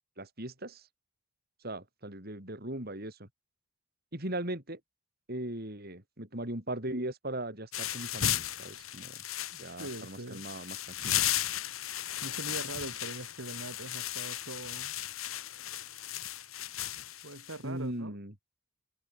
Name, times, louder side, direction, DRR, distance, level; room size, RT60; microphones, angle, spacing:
voice 1, 0.2-0.9 1.6-3.3 4.1-4.8 5.3-9.2 9.6-11.3 17.6-18.3, right 1 dB, 50° right, 6.0 m, -39 dB
sound 1, 7.7-17.6, left 11 dB, 90° left, 3.9 m, -35 dB
voice 2, 9.5-10.4 12.2-14.9 17.2-18.2, right 2 dB, 75° right, 3.7 m, -42 dB
head